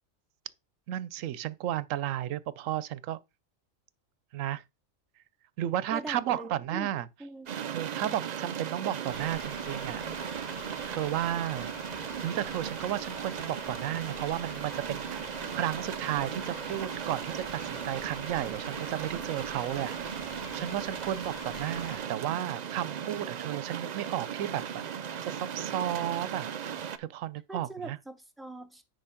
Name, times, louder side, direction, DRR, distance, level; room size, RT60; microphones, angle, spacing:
voice 1, 0.9-3.2 4.3-4.6 5.6-7.1 7.7-10.0 10.9-11.7 12.0-15.3 15.5-20.1 20.5-24.8 25.2-26.5 27.0-28.0, right 12 dB, 90° right, 1.0 m, -33 dB
voice 2, 5.9-6.9 7.2-7.5 27.5-28.8, right 2 dB, ahead, 0.9 m, -42 dB
sound 1, 7.5-27.0, right 8 dB, 60° right, 0.4 m, -37 dB
sound 2, 9.1-22.0, left 2 dB, 35° left, 1.8 m, -46 dB
9.8 x 3.5 x 5.8 m
omnidirectional pair, 1.3 m